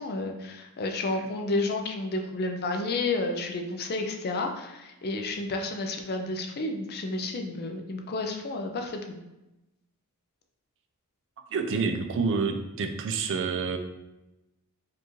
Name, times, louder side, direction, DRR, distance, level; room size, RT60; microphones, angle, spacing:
voice 1, 0.0-9.2, left 2 dB, 45° left, 3 dB, 0.5 m, -31 dB
voice 2, 11.5-13.8, right 5 dB, 60° right, 6 dB, 0.4 m, -28 dB
4.3 x 2.5 x 3.1 m, 0.96 s
head